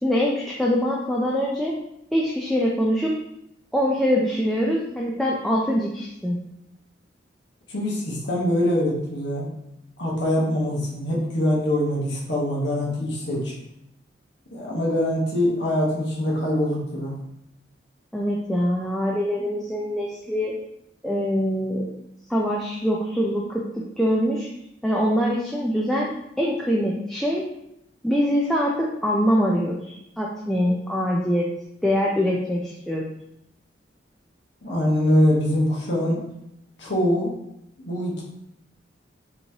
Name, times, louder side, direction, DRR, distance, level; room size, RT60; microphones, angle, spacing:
voice 1, 0.0-1.7 2.1-3.1 3.7-6.4 18.1-20.5 21.0-21.9 22.3-24.5 24.8-26.1 26.4-27.5 28.0-31.5 31.8-33.0, equal, ahead, -4 dB, 0.4 m, -23 dB
voice 2, 7.7-9.5 10.0-13.5 14.5-17.1 34.6-36.2 36.8-37.4 37.8-38.2, left 1 dB, 75° left, -4 dB, 1.2 m, -23 dB
5.3 x 3.1 x 2.8 m, 0.80 s
head